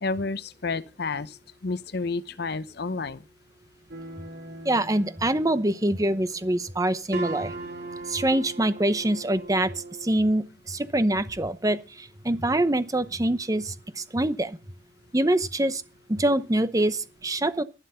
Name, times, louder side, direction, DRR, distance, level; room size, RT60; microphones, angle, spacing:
voice 1, 0.0-3.2, left 3 dB, 60° left, 0.7 m, -31 dB
sound 1, 3.9-10.1, right 2 dB, 60° right, 3.2 m, -39 dB
voice 2, 4.6-7.5 8.1-9.7 10.0-14.6 15.1-15.8 16.1-17.6, right 1 dB, 20° right, 0.8 m, -25 dB
11.5 x 11.5 x 5.6 m
head